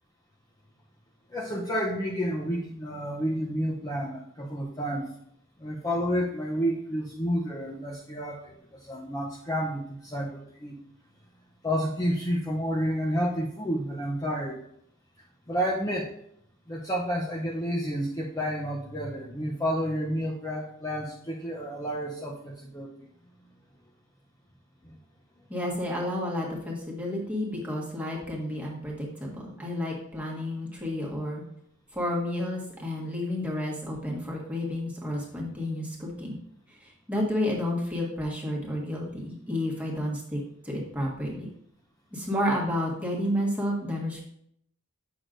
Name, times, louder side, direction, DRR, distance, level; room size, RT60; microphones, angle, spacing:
voice 1, 1.3-5.1 5.6-10.8 11.6-14.6 15.5-16.1 16.7-22.9 24.8-25.0, equal, 15° left, -3 dB, 0.6 m, -30 dB
voice 2, 25.5-31.4 31.9-36.4 36.7-41.5 42.1-44.2, left 1 dB, 5° right, -4 dB, 1.4 m, -31 dB
8.2 x 6.3 x 2.5 m, 0.71 s
head